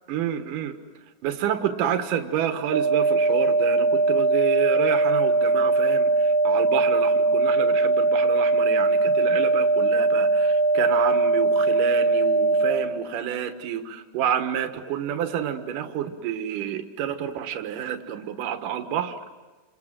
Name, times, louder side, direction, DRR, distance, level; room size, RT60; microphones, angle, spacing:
voice 1, 0.1-0.8 1.2-19.2, right 9 dB, 75° right, 7 dB, 3.1 m, -29 dB
sound 1, 2.7-12.7, right 2 dB, 55° left, 5.2 m, -20 dB
28.5 x 27.5 x 7.7 m, 1.3 s
omnidirectional pair, 3.8 m